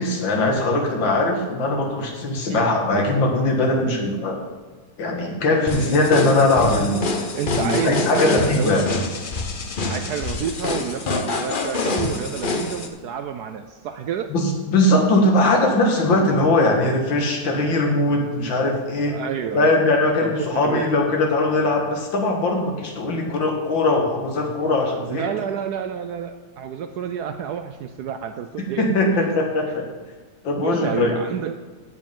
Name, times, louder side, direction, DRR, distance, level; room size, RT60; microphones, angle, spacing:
voice 1, 0.0-4.4 5.0-7.1 7.6-8.8 14.3-19.2 19.5-25.2 28.6-29.9 30.4-31.1, left 2 dB, 75° left, 2 dB, 2.3 m, -20 dB
sound 1, 5.7-12.9, left 3 dB, 45° left, 0.7 m, -26 dB
voice 2, 6.2-6.6 7.3-8.9 9.9-14.3 19.1-19.7 20.2-20.9 25.1-29.3 29.7-29.8 30.6-31.6, right 8 dB, 75° right, 8 dB, 0.9 m, -29 dB
16.0 x 5.4 x 5.4 m, 1.4 s
omnidirectional pair, 2.1 m